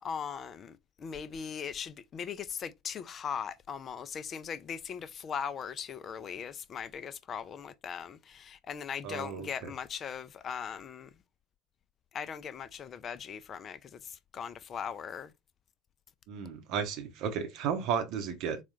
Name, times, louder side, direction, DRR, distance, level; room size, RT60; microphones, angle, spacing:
voice 1, 0.0-11.1 12.1-15.3, left 7 dB, 35° left, 0.4 m, -39 dB
voice 2, 9.0-9.5 16.3-18.6, right 7 dB, 50° right, 0.8 m, -33 dB
4.0 x 2.3 x 3.0 m
figure-of-eight pair, 70°, 0 cm